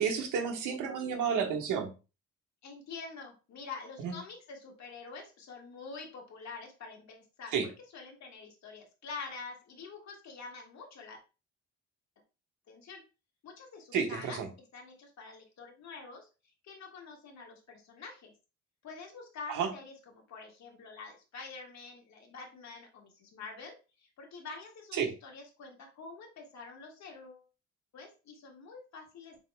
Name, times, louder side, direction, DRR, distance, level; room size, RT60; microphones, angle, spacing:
voice 1, 0.0-1.9 4.0-4.1 7.5-7.6 13.9-14.5 19.5-19.7 24.9-25.1, right 6 dB, 85° right, 3 dB, 1.2 m, -31 dB
voice 2, 2.6-11.2 12.7-13.0 13.4-14.4 14.7-16.3 16.6-18.3 18.8-27.4 27.9-29.4, left 4 dB, 65° left, 1 dB, 1.7 m, -46 dB
6.8 x 3.0 x 2.3 m, 0.31 s
cardioid pair, 90°, 30 cm